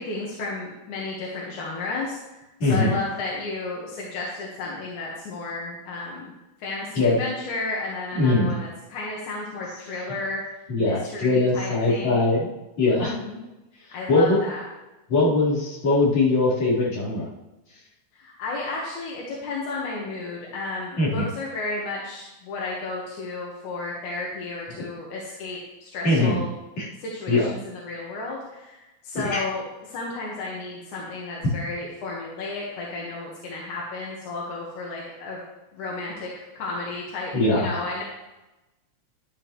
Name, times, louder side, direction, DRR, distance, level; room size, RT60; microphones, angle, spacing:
voice 1, 0.0-6.3 6.6-10.4 10.8-12.2 12.9-13.4 13.9-14.6 18.1-26.5 27.0-35.4 35.7-38.0, left 3 dB, 90° left, -3 dB, 3.0 m, -33 dB
voice 2, 2.6-3.0 7.0-7.2 8.1-8.6 10.7-12.5 12.8-13.1 14.1-14.4 15.1-17.3 21.0-21.3 26.0-26.4 26.8-26.9 27.3-27.5 29.2-29.5 31.4-31.5 37.3-37.7, left 2 dB, 65° left, -9 dB, 5.1 m, -21 dB
11.5 x 11.5 x 3.1 m, 1.0 s
omnidirectional pair, 3.4 m